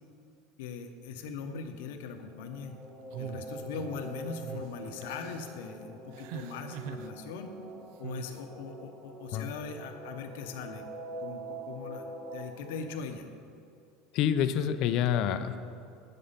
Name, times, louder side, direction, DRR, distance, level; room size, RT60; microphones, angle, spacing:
voice 1, 0.6-2.7 3.2-7.5 8.0-10.8 11.2-13.3, left 5 dB, 80° left, 5 dB, 0.9 m, -40 dB
sound 1, 2.1-12.8, right 2 dB, 20° right, 1.4 m, -44 dB
sound 2, 3.1-4.0 4.4-4.7 5.0-5.5 6.1-7.1 8.0-8.4, right 10 dB, 65° right, 0.4 m, -42 dB
voice 2, 14.1-15.6, left 9 dB, 50° left, 11 dB, 0.5 m, -27 dB
9.1 x 6.7 x 5.6 m, 2.5 s
supercardioid pair, 150°, 0 cm